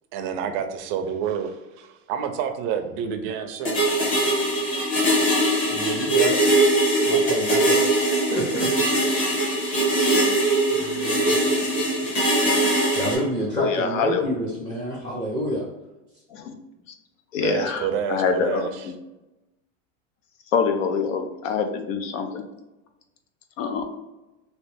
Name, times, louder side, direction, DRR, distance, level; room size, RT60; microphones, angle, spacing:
voice 1, 0.1-4.0 17.4-18.9, right 7 dB, 35° right, 6 dB, 0.4 m, -28 dB
sound 1, 3.6-13.2, right 1 dB, 35° left, 1.3 m, -21 dB
voice 2, 5.7-6.4 7.0-7.8 8.3-8.7 9.6-9.8 10.7-12.0 12.9-15.7, right 1 dB, 10° left, -5 dB, 0.6 m, -29 dB
voice 3, 13.6-14.2 16.3-16.5 17.3-18.7 20.5-22.4 23.6-23.9, left 6 dB, 90° left, 6 dB, 0.8 m, -25 dB
3.1 x 2.8 x 3.2 m, 1.0 s
supercardioid pair, 150°, 38 cm